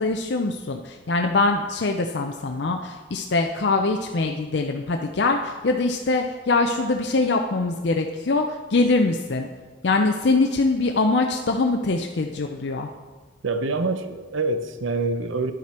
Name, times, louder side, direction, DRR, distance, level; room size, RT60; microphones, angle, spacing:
voice 1, 0.0-9.5 9.8-12.9, left 3 dB, 60° left, 3 dB, 0.5 m, -23 dB
voice 2, 13.4-15.5, right 3 dB, 80° right, 9 dB, 0.7 m, -25 dB
10.5 x 7.4 x 4.3 m, 1.4 s
head